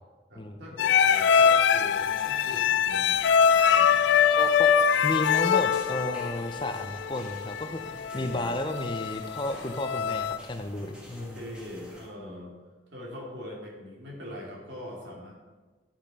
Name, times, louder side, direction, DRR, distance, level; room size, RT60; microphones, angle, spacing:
voice 1, 0.3-4.4 7.9-8.6 11.2-12.5 12.9-15.3, left 1 dB, 75° right, -3 dB, 2.6 m, -42 dB
sound 1, 0.8-10.4, left 7 dB, 75° left, 0.3 m, -23 dB
sound 2, 1.4-12.1, equal, 5° right, 1.5 m, -49 dB
voice 2, 4.4-11.5, left 1 dB, 25° left, 7 dB, 0.6 m, -33 dB
10.5 x 5.8 x 5.3 m, 1.3 s
head